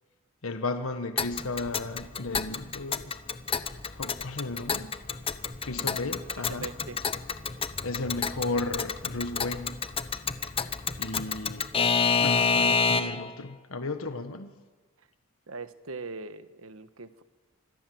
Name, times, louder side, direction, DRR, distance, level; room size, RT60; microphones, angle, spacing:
voice 1, 0.4-3.1 3.9-4.9 5.6-6.7 7.8-9.8 11.0-11.7 12.2-14.6, left 2 dB, 85° left, 8 dB, 1.4 m, -34 dB
Alarm / Clock, 1.2-13.3, left 5 dB, 25° left, 0.9 m, -29 dB
voice 2, 6.4-7.0 15.5-17.2, right 3 dB, 85° right, 11 dB, 1.4 m, -41 dB
27.0 x 25.0 x 7.8 m, 1.3 s
head